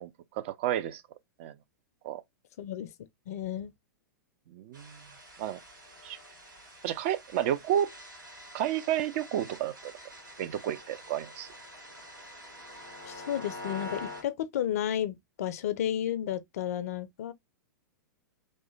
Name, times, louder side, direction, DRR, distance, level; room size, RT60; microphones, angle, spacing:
voice 1, 0.0-1.0 1.4-1.5 2.0-2.2 4.5-5.0 5.4-5.6 6.0-6.2 6.8-7.9 8.5-9.9 10.4-11.5, right 11 dB, 40° right, 0.3 m, -31 dB
voice 2, 2.6-2.9 3.3-3.7 13.0-17.3, left 10 dB, 50° left, 0.4 m, -32 dB
sound 1, 4.7-14.2, left 1 dB, 70° right, 1.8 m, -46 dB
3.1 x 2.1 x 3.0 m
figure-of-eight pair, 100°, 11 cm